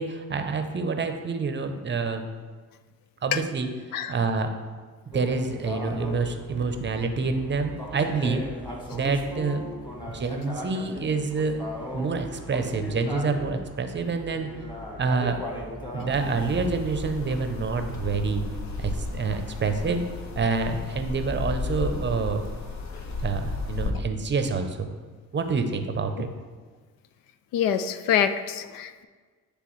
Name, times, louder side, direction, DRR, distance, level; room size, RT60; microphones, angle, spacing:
voice 1, 0.0-2.2 3.2-3.7 4.1-4.5 5.1-8.4 8.9-9.7 10.1-11.6 11.9-14.5 15.0-15.4 15.9-18.5 18.8-20.0 20.4-22.4 23.2-24.9 25.3-26.3, right 4 dB, 30° right, 7 dB, 0.6 m, -27 dB
sound 1, 5.1-16.7, left 1 dB, 10° left, 1.4 m, -38 dB
sound 2, 16.1-23.9, left 3 dB, 55° left, 0.9 m, -33 dB
voice 2, 27.5-29.0, left 9 dB, 75° left, 11 dB, 0.5 m, -25 dB
9.7 x 3.3 x 3.1 m, 1.4 s
supercardioid pair, 75°, 35 cm